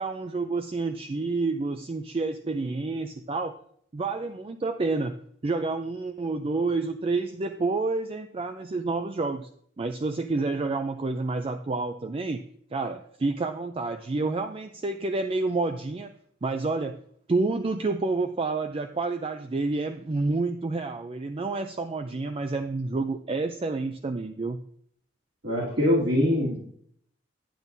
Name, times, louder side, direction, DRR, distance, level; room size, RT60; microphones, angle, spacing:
voice 1, 0.0-3.6 3.9-5.1 5.4-9.5 9.8-12.4 12.7-16.1 16.4-17.0 17.3-24.6, right 3 dB, 30° right, 7 dB, 0.4 m, -29 dB
voice 2, 25.4-26.7, left 1 dB, 65° right, -6 dB, 2.8 m, -24 dB
10.0 x 8.9 x 2.7 m, 0.65 s
head